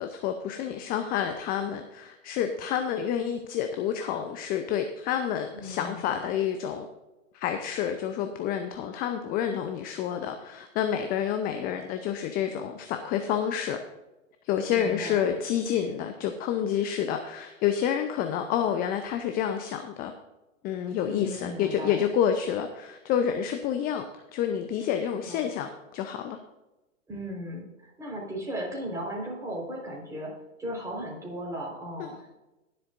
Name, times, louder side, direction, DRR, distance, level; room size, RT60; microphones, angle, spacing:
voice 1, 0.0-6.9 7.3-13.8 14.4-20.1 20.6-24.0 24.3-26.4 32.0-32.1, left 9 dB, 20° left, 7 dB, 0.6 m, -29 dB
voice 2, 5.5-6.1 14.7-15.3 21.0-22.1 25.3-25.5 27.1-30.3 30.6-32.3, equal, 10° right, -3 dB, 4.3 m, -36 dB
20.0 x 7.7 x 2.6 m, 1.0 s
figure-of-eight pair, 115°, 40 cm